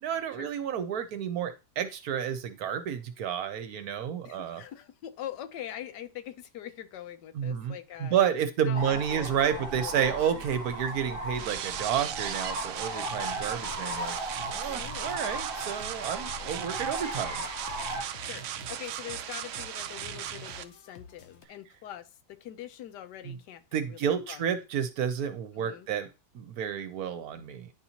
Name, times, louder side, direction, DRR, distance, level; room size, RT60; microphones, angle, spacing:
voice 1, 0.0-4.6 7.3-7.7 8.0-14.2 14.5-17.4 23.3-23.4 23.7-26.1 26.3-27.7, right 8 dB, 65° right, 9 dB, 1.1 m, -30 dB
voice 2, 4.2-8.2 8.6-10.4 14.7-15.1 16.3-16.5 18.2-24.4 25.6-25.9, left 11 dB, 80° left, 12 dB, 1.3 m, -43 dB
sound 1, 8.7-18.0, right 1 dB, 40° right, 1.2 m, -37 dB
sound 2, 9.6-21.5, left 7 dB, 55° left, 0.8 m, -53 dB
sound 3, 11.4-20.6, right 10 dB, 85° right, 0.6 m, -37 dB
10.5 x 4.2 x 2.8 m, 0.29 s
omnidirectional pair, 1.8 m